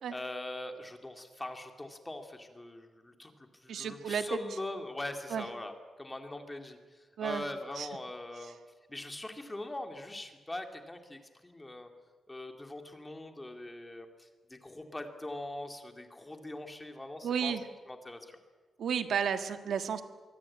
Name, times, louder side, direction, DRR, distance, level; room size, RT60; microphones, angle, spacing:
voice 1, 0.1-3.3 3.6-8.6 8.9-11.9 12.3-17.5 17.9-18.4, left 1 dB, 10° left, 5 dB, 2.4 m, -42 dB
voice 2, 3.7-4.4 5.3-5.4 7.2-7.4 7.8-7.9 17.2-17.6 18.8-20.0, right 7 dB, 65° right, 8 dB, 1.5 m, -32 dB
25.5 x 23.5 x 8.6 m, 1.4 s
wide cardioid pair, 170°, 0 cm